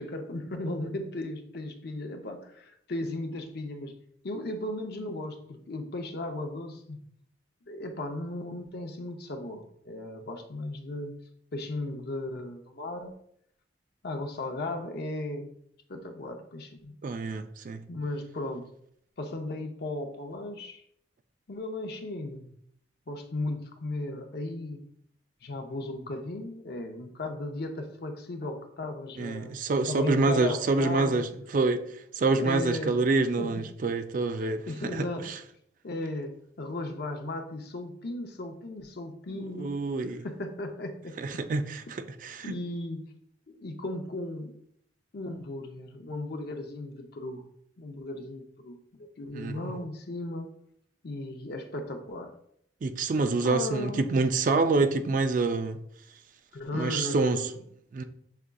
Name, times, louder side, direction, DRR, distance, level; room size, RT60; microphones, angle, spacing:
voice 1, 0.0-3.9 4.2-7.0 7.7-11.2 11.5-13.1 14.0-15.5 15.9-16.9 17.9-18.7 19.2-20.8 21.5-22.5 23.1-24.8 25.4-29.6 29.9-31.2 32.4-33.0 33.4-33.6 34.4-35.3 35.8-39.7 40.0-41.2 42.4-43.0 43.5-44.5 45.1-47.4 47.8-50.5 51.0-52.3 53.2-54.3 56.5-57.6, left 2 dB, 55° left, 0.6 m, -36 dB
voice 2, 17.0-17.8 29.2-31.3 31.5-31.8 32.2-35.3 39.6-40.2 41.2-42.5 49.3-49.7 52.8-55.8 56.7-57.4 57.9-58.0, right 3 dB, 45° right, 0.3 m, -27 dB
6.6 x 3.5 x 2.3 m
head